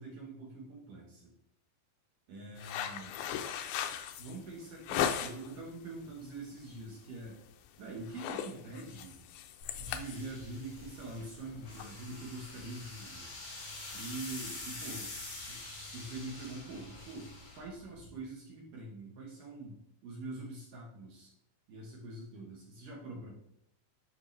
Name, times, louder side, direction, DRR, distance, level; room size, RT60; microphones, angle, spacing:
voice 1, 0.0-1.3 2.3-3.1 4.2-7.4 7.8-9.2 9.8-13.3 13.9-15.2 15.5-15.6 15.9-21.3 21.7-23.3, right 2 dB, 65° right, -1 dB, 2.2 m, -44 dB
sound 1, 2.6-5.6 6.0-6.4 6.7-6.9 7.3-7.7 7.9-11.8, left 9 dB, 90° left, 2.1 m, -37 dB
sound 2, 9.6-18.2, left 2 dB, 50° left, 5.3 m, -46 dB
12.0 x 5.1 x 3.3 m, 0.76 s
omnidirectional pair, 5.2 m